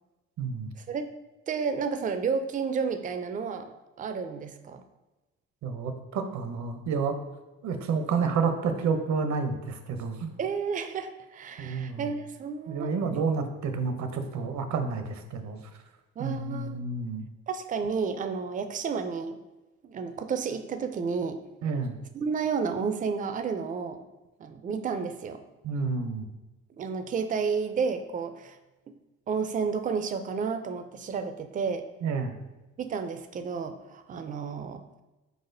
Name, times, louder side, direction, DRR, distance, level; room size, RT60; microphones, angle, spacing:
voice 1, 0.4-0.7 5.6-7.2 7.6-10.3 11.6-12.1 12.7-15.6 16.2-17.2 21.6-22.0 25.6-26.3 32.0-32.3, right 5 dB, 70° right, 7 dB, 0.7 m, -30 dB
voice 2, 1.5-3.7 4.0-4.8 10.4-12.9 16.2-16.8 17.5-19.4 19.8-21.4 22.1-24.0 24.4-25.4 26.8-28.6 29.3-31.8 32.8-34.8, right 5 dB, 25° right, 8 dB, 0.4 m, -31 dB
4.7 x 4.1 x 2.6 m, 1.1 s
cardioid pair, 90°, 30 cm